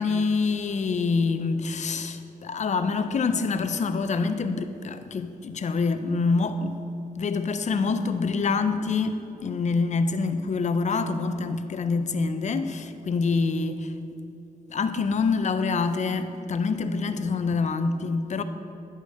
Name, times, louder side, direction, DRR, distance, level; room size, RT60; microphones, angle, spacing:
voice 1, 0.0-6.8 7.2-13.9 14.7-18.4, left 4 dB, 50° left, 0.5 m, -26 dB
10.0 x 5.0 x 4.1 m
cardioid pair, 65°, 15 cm